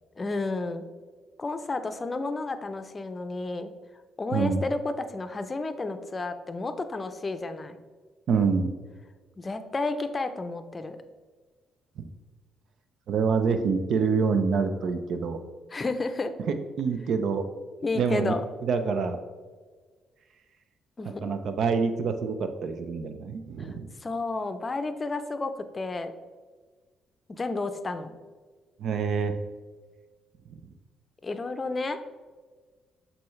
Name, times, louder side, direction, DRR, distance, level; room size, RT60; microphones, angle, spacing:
voice 1, 0.2-0.9 1.4-3.7 4.2-7.8 9.4-11.0 15.7-16.3 17.8-18.4 21.0-21.3 24.0-26.1 27.3-28.1 31.2-32.0, left 3 dB, 30° left, 9 dB, 0.5 m, -31 dB
voice 2, 4.3-4.6 8.3-8.7 12.0-12.1 13.1-15.4 16.8-17.5 17.9-18.3 18.6-19.2 21.0-23.9 28.8-29.3 30.5-30.6, right 5 dB, 70° right, 8 dB, 0.6 m, -26 dB
6.8 x 4.3 x 3.2 m, 1.4 s
cardioid pair, 90°, 0 cm